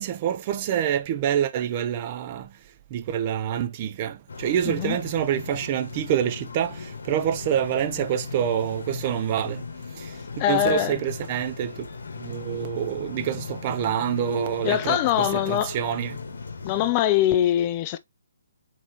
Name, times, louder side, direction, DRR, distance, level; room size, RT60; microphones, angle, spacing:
voice 1, 0.0-2.5 2.9-9.6 10.5-11.9 12.2-16.1, right 9 dB, 30° right, 0.6 m, -27 dB
sound 1, 4.3-16.9, left 4 dB, 75° left, 1.3 m, -37 dB
voice 2, 4.7-5.0 10.4-10.9 14.6-15.8 16.6-18.0, left 11 dB, 25° left, 0.3 m, -23 dB
4.3 x 4.2 x 2.9 m
hypercardioid pair, 160°, 0 cm